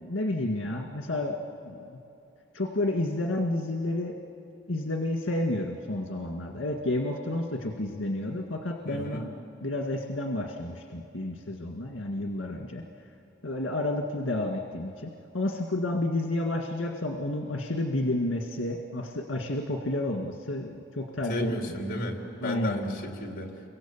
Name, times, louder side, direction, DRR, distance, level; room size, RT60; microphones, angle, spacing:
voice 1, 0.0-1.4 1.6-2.0 2.5-4.2 4.7-9.3 9.6-12.8 13.4-21.5 22.4-22.9, left 1 dB, 80° left, 2 dB, 1.9 m, -30 dB
voice 2, 8.9-9.2 21.3-23.5, equal, 45° left, 1 dB, 3.5 m, -33 dB
29.5 x 24.5 x 7.3 m, 2.9 s
head